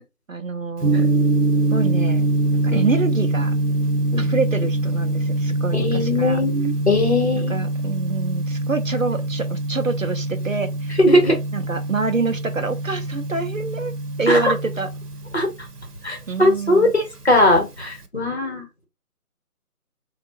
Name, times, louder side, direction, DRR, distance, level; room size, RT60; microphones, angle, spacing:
voice 1, 0.3-1.1 1.7-2.3 2.6-3.5 4.2-6.4 7.5-11.0 11.5-14.9 16.3-16.9, right 4 dB, 60° right, 0.5 m, -26 dB
Gong, 0.8-18.1, right 2 dB, 85° right, 0.9 m, -24 dB
voice 2, 5.7-7.7 11.0-11.4 14.3-14.5 15.3-15.5 16.0-18.9, left 1 dB, 45° left, 1.3 m, -19 dB
4.1 x 2.4 x 2.9 m
figure-of-eight pair, 170°, 46 cm